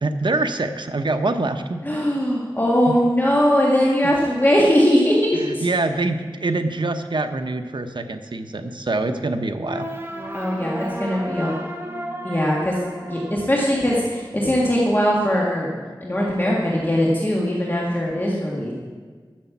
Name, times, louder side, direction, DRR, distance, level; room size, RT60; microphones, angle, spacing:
voice 1, 0.0-1.8 2.9-3.0 4.0-4.1 5.3-9.9, right 2 dB, 65° right, 7 dB, 0.8 m, -25 dB
voice 2, 1.8-5.6 10.3-11.6 12.2-12.8 13.1-15.7 16.0-18.7, equal, 25° left, -5 dB, 1.8 m, -20 dB
sound 1, 9.6-14.6, right 1 dB, 25° right, 1.4 m, -34 dB
12.0 x 6.8 x 7.2 m, 1.5 s
wide cardioid pair, 60°, 8 cm